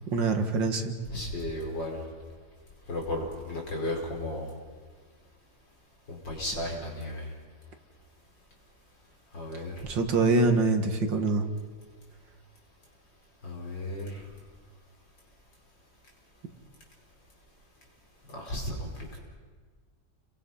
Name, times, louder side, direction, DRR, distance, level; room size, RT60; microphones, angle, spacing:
voice 1, 0.1-0.9 9.8-11.4, right 3 dB, 90° right, 6 dB, 2.7 m, -24 dB
voice 2, 1.1-2.0 2.9-4.5 6.1-7.2 9.3-9.7 13.4-14.2 18.3-19.2, left 1 dB, 85° left, -1 dB, 5.7 m, -34 dB
30.0 x 22.0 x 5.7 m, 1.5 s
omnidirectional pair, 1.9 m